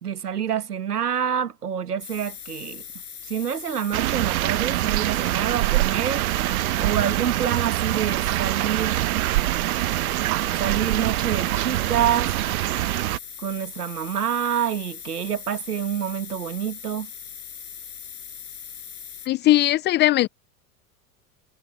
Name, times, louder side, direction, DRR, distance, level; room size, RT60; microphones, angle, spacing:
voice 1, 0.0-2.8 3.2-9.0 10.6-12.3 13.4-17.1, right 9 dB, 90° right, 1.5 m, -27 dB
sound 1, 2.0-19.3, left 7 dB, 85° left, 6.3 m, -40 dB
sound 2, 3.9-13.2, right 19 dB, 65° right, 1.1 m, -24 dB
voice 2, 19.3-20.3, left 16 dB, 25° left, 0.4 m, -19 dB
hypercardioid pair, 85°, 45 cm